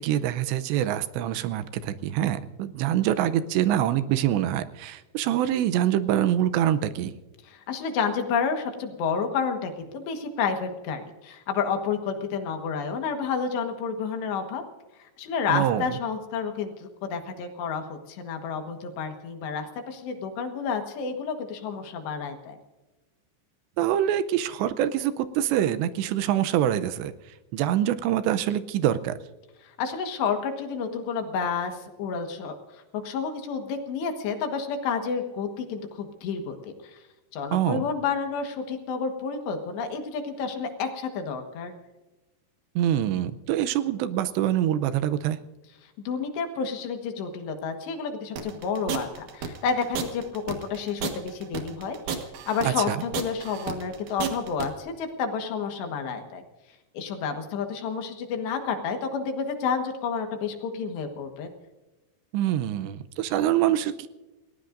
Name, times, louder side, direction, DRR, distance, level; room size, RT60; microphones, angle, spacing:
voice 1, 0.0-7.1 15.5-15.9 23.8-27.1 27.5-29.2 37.5-37.8 42.8-45.4 52.9-53.0 62.3-64.1, right 11 dB, 80° right, 11 dB, 2.8 m, -25 dB
voice 2, 7.4-14.6 15.0-22.6 29.6-37.0 37.3-41.7 46.1-52.0 52.5-56.4 57.0-61.5, left 5 dB, 75° left, 5 dB, 3.5 m, -30 dB
sound 1, 48.4-54.7, right 7 dB, 60° right, 2.5 m, -32 dB
29.0 x 18.0 x 2.6 m, 1.1 s
omnidirectional pair, 5.2 m